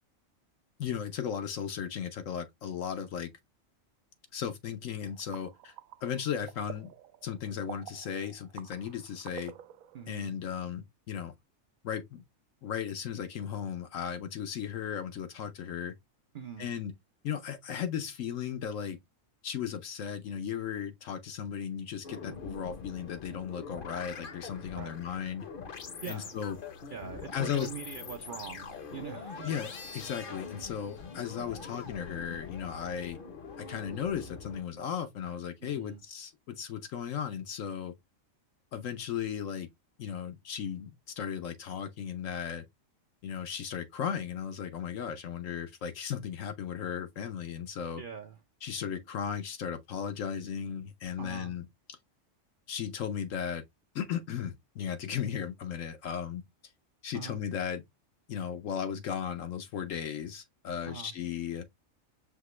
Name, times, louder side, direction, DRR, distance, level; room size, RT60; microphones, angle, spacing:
voice 1, 0.8-3.3 4.3-5.7 6.0-6.9 7.2-9.5 10.1-11.3 11.8-12.2 12.6-15.9 16.6-16.9 17.2-19.0 19.4-25.5 26.1-26.6 27.3-27.7 29.4-33.2 33.6-37.9 38.7-39.7 40.0-42.6 43.2-48.0 48.6-52.0 52.7-53.6 53.9-56.4 57.0-57.8 58.3-61.6, left 8 dB, 75° left, 1.1 m, -36 dB
sound 1, 5.0-10.1, right 12 dB, 85° right, 1.0 m, -49 dB
voice 2, 9.9-10.4 16.3-16.7 24.8-25.0 26.0-26.4 26.9-29.5 30.3-30.4 35.6-36.0 48.0-48.4 51.2-51.5 57.1-57.4 60.9-61.1, right 7 dB, 55° right, 0.6 m, -43 dB
sound 2, 22.0-34.6, left 5 dB, 45° left, 0.9 m, -44 dB
5.9 x 2.9 x 3.1 m
omnidirectional pair, 1.4 m